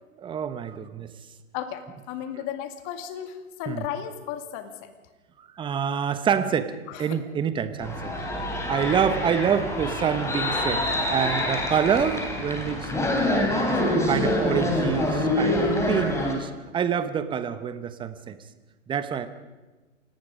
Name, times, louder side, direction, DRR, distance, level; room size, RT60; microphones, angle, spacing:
voice 1, 0.2-1.1 3.7-3.8 5.6-8.1 8.7-12.9 13.2-18.4 18.9-19.3, right 7 dB, 10° right, 12 dB, 1.0 m, -27 dB
voice 2, 1.5-4.9 6.9-7.2, left 10 dB, 35° left, 8 dB, 2.2 m, -35 dB
sound 1, 7.8-16.3, left 1 dB, 5° left, 3.7 m, -26 dB
27.5 x 18.0 x 5.2 m, 1.2 s
hypercardioid pair, 125°, 39 cm